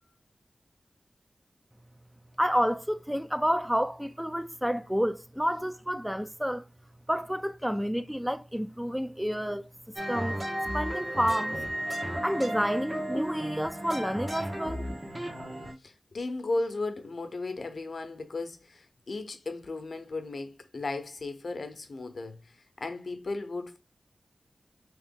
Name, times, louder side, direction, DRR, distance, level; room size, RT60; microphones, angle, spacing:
voice 1, 2.4-6.6 7.1-9.6 10.1-10.4 10.7-11.6 12.2-14.9, equal, 5° right, 0.4 m, -29 dB
sound 1, 10.0-15.7, equal, 35° right, 1.2 m, -34 dB
voice 2, 15.8-23.8, left 2 dB, 70° left, 0.7 m, -35 dB
3.2 x 3.0 x 3.5 m
cardioid pair, 45°, 0 cm